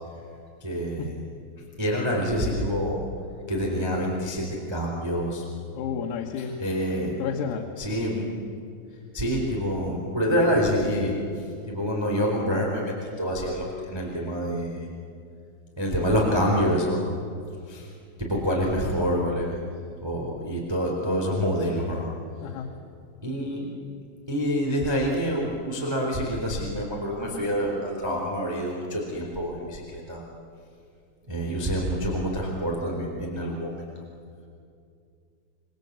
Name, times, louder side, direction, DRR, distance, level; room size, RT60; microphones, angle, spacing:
voice 1, 0.6-1.2 1.8-3.0 3.5-5.4 6.4-7.2 7.8-8.3 9.1-14.9 15.8-17.1 17.7-17.9 18.2-19.6 20.0-22.1 23.2-23.7 24.3-30.2 31.3-33.8, equal, 5° right, -2 dB, 2.9 m, -27 dB
voice 2, 5.7-6.5 7.2-7.7 22.4-22.7, left 7 dB, 85° left, 1 dB, 4.2 m, -31 dB
28.0 x 23.0 x 8.2 m, 2.4 s
omnidirectional pair, 6.0 m